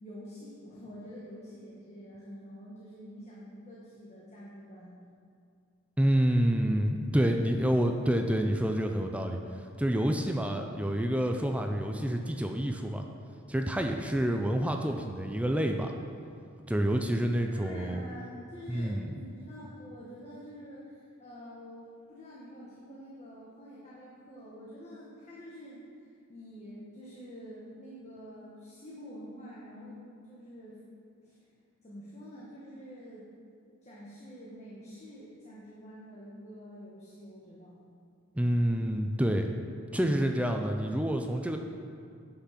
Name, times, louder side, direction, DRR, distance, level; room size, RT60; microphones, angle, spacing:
voice 1, 0.0-5.1 17.5-21.8 22.1-30.8 31.2-31.4 31.8-33.3 33.8-37.8, equal, 30° left, -7 dB, 1.3 m, -47 dB
voice 2, 6.0-9.4 9.8-13.0 13.5-15.9 16.7-18.0 18.7-19.1 38.4-39.5 39.9-41.6, equal, 5° right, 4 dB, 0.4 m, -28 dB
10.0 x 5.9 x 5.8 m, 2.4 s
head